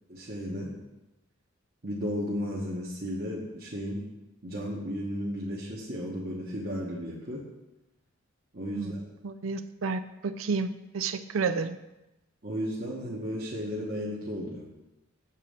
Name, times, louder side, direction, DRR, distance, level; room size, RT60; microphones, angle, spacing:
voice 1, 0.1-0.7 1.8-4.0 4.4-7.4 8.5-9.0 12.4-14.7, equal, 45° right, -6 dB, 1.2 m, -34 dB
voice 2, 8.7-11.8, right 4 dB, 85° right, 10 dB, 0.5 m, -31 dB
7.3 x 4.1 x 6.4 m, 0.97 s
head